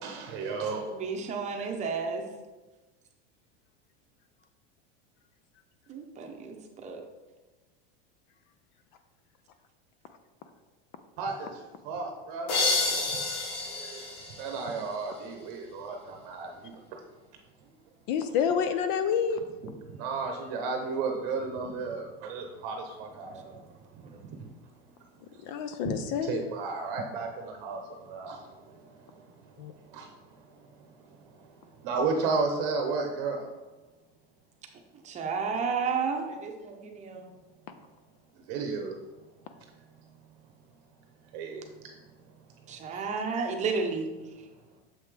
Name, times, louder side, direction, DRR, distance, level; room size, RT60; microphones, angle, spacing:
voice 1, 0.0-1.0 1.5-1.7 11.2-12.6 12.9-13.0 13.8-14.0 14.4-17.0 19.6-23.5 24.2-24.4 25.8-25.9 26.2-29.3 29.9-30.4 30.8-30.9 31.2-33.5 38.5-39.0 41.3-41.7 42.9-43.2, right 4 dB, 55° right, 3 dB, 0.8 m, -34 dB
voice 2, 0.9-2.3 5.9-7.0 23.5-23.6 24.0-24.2 35.0-37.3 42.7-44.1, right 5 dB, 25° right, 3 dB, 0.8 m, -32 dB
sound 1, 12.5-15.2, left 3 dB, 80° left, 2.0 m, -30 dB
voice 3, 18.1-19.4 25.5-26.4 29.6-29.7, left 7 dB, 50° left, 9 dB, 0.5 m, -28 dB
7.2 x 5.6 x 3.3 m, 1.2 s
supercardioid pair, 155°, 31 cm